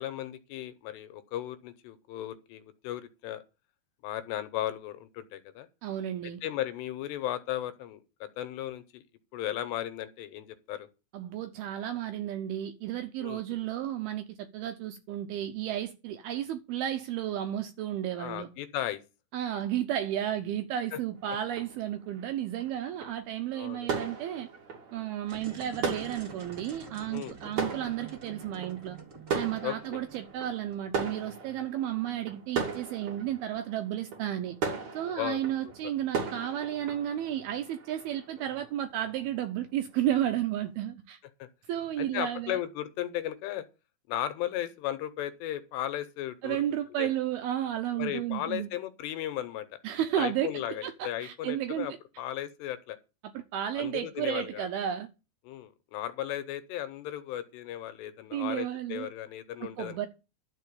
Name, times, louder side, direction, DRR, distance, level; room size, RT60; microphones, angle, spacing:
voice 1, 0.0-3.4 4.0-5.7 6.4-9.0 9.3-10.9 13.2-13.4 18.2-19.0 20.9-21.0 23.5-23.9 27.1-27.3 29.6-30.0 35.2-35.4 35.8-35.9 41.4-41.5 42.0-43.6 44.1-46.6 47.0-47.1 48.0-49.8 50.2-53.0 53.8-54.7 55.4-60.0, left 12 dB, 80° left, 2.8 m, -36 dB
voice 2, 5.8-6.4 11.1-18.5 19.3-24.5 24.9-29.0 29.3-34.6 34.9-41.2 41.7-42.6 46.4-48.7 49.8-52.0 53.3-55.1 58.3-59.1 59.6-60.1, right 11 dB, 80° right, 2.2 m, -33 dB
sound 1, 21.1-39.7 40.0-40.2, right 5 dB, 45° right, 3.6 m, -38 dB
sound 2, 25.2-31.1, right 4 dB, 60° right, 0.8 m, -48 dB
12.5 x 4.5 x 8.3 m
omnidirectional pair, 5.2 m